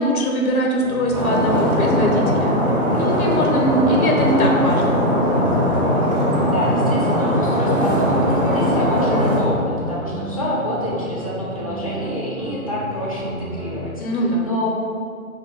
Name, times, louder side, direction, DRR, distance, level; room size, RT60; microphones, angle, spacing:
voice 1, 0.0-2.6 3.0-5.0 14.0-14.5, equal, 80° left, 0 dB, 0.6 m, -21 dB
sound 1, 0.8-13.8, equal, 85° right, 0.8 m, -31 dB
Stream, 1.1-9.4, equal, 30° right, 0.6 m, -20 dB
voice 2, 6.4-13.9 14.4-14.7, left 1 dB, 30° left, -7 dB, 0.4 m, -27 dB
Acoustic guitar, 7.6-10.8, right 7 dB, 45° right, 1.0 m, -34 dB
2.5 x 2.1 x 3.7 m, 2.3 s
hypercardioid pair, 145°, 42 cm